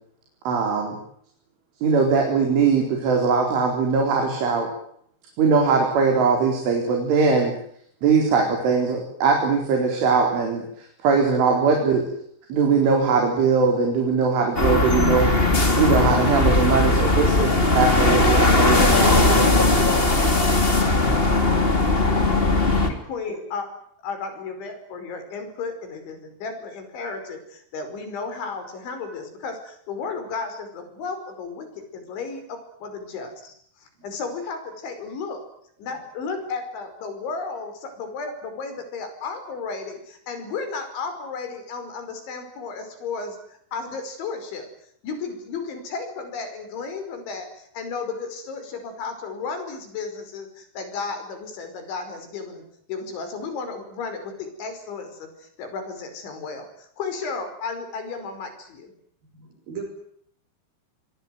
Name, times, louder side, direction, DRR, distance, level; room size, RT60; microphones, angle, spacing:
voice 1, 0.5-1.0 1.8-4.7 5.4-7.5 8.0-12.1 12.5-15.3 15.8-19.5, right 5 dB, 85° right, 2 dB, 7.0 m, -21 dB
sound 1, 14.5-22.9, left 2 dB, 15° left, 2.3 m, -19 dB
voice 2, 22.9-23.7 24.0-31.7 31.9-33.5 33.8-35.4 35.8-44.7 45.0-58.9, left 4 dB, 75° left, 8 dB, 7.5 m, -33 dB
voice 3, 59.2-59.8, right 6 dB, 50° right, 5 dB, 7.4 m, -38 dB
26.0 x 23.0 x 9.5 m, 0.69 s
omnidirectional pair, 5.4 m